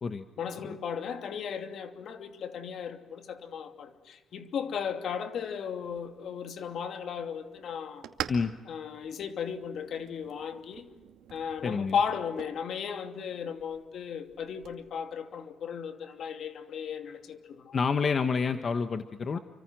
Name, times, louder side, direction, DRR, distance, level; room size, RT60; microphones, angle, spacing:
voice 1, 0.4-8.1 8.7-10.9 11.3-17.8 19.3-19.4, left 7 dB, 65° left, 2.7 m, -35 dB
sound 1, 5.8-14.8, right 10 dB, 85° right, 2.4 m, -46 dB
voice 2, 11.6-11.9 17.7-19.4, left 5 dB, 45° left, 1.3 m, -28 dB
29.5 x 25.0 x 6.3 m
cardioid pair, 90°, 0 cm